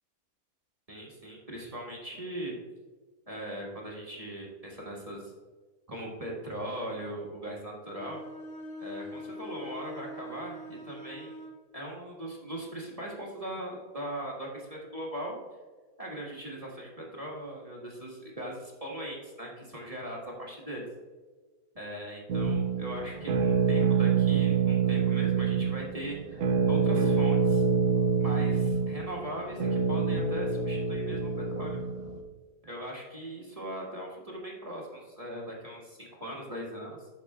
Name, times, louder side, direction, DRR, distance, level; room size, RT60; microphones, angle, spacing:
voice 1, 0.9-2.5 3.3-5.3 5.9-8.2 8.8-11.3 11.7-15.4 16.0-20.9 21.7-27.6 28.2-31.8 32.6-37.1, right 1 dB, 25° right, -3 dB, 1.5 m, -39 dB
Bowed string instrument, 7.8-11.6, left 1 dB, 65° left, 2.2 m, -43 dB
sound 1, 22.3-32.2, right 6 dB, 60° right, 1.2 m, -26 dB
13.0 x 5.6 x 2.4 m, 1.4 s
omnidirectional pair, 1.6 m